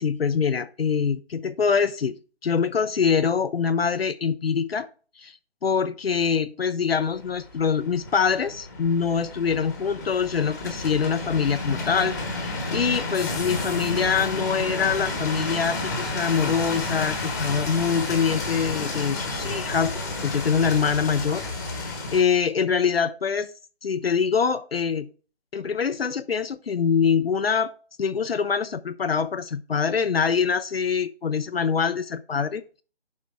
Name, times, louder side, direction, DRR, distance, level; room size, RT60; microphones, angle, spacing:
voice 1, 0.0-2.2 2.4-4.9 5.2-5.4 5.6-19.9 20.2-21.4 21.7-23.5 23.8-25.1 25.5-27.7 28.0-32.8, left 6 dB, 65° left, 12 dB, 0.6 m, -24 dB
sound 1, 7.0-22.2, left 2 dB, 15° left, 1.1 m, -31 dB
9.4 x 5.8 x 3.5 m, 0.38 s
figure-of-eight pair, 165°, 33 cm